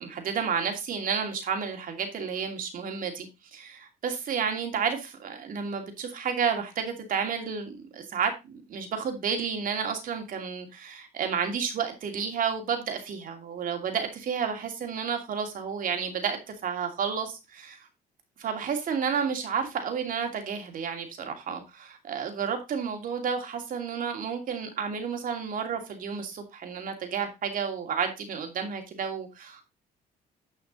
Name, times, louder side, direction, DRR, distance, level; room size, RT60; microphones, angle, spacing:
voice 1, 0.0-3.3 3.5-17.4 18.4-29.6, right 6 dB, 55° right, 2.7 m, -31 dB
10.0 x 5.8 x 4.0 m
cardioid pair, 110°, 17 cm